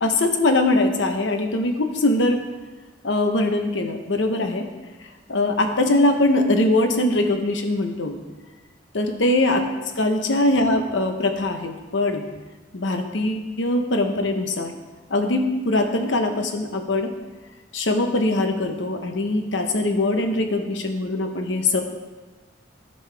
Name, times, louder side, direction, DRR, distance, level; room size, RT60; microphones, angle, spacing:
voice 1, 0.0-2.4 3.0-4.7 5.3-8.2 8.9-9.6 10.0-12.2 12.7-14.7 15.1-17.1 17.7-21.8, left 2 dB, 80° left, 5 dB, 1.0 m, -22 dB
15.0 x 5.4 x 3.4 m, 1.2 s
head